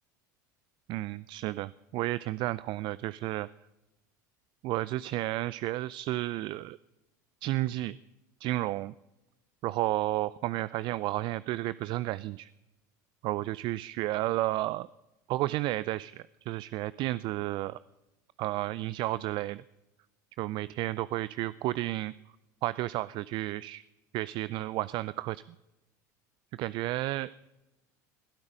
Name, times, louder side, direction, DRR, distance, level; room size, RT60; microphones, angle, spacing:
voice 1, 0.9-3.5 4.6-6.8 7.4-8.0 8.4-8.9 9.6-12.5 13.2-14.9 15.3-17.8 18.4-19.6 20.4-22.1 22.6-23.8 24.1-25.4 26.6-27.3, right 17 dB, 55° right, 18 dB, 0.5 m, -32 dB
21.0 x 12.0 x 5.1 m, 0.95 s
hypercardioid pair, 90°, 10 cm